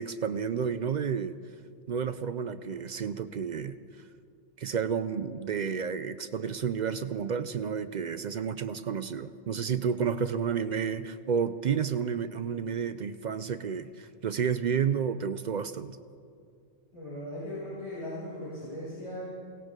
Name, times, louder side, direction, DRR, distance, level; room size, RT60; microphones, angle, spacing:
voice 1, 0.0-1.4 1.9-3.8 4.6-16.0, right 7 dB, 55° right, 12 dB, 0.5 m, -31 dB
voice 2, 16.9-19.3, left 1 dB, 35° left, -12 dB, 5.6 m, -38 dB
21.5 x 18.0 x 3.7 m, 2.3 s
omnidirectional pair, 1.1 m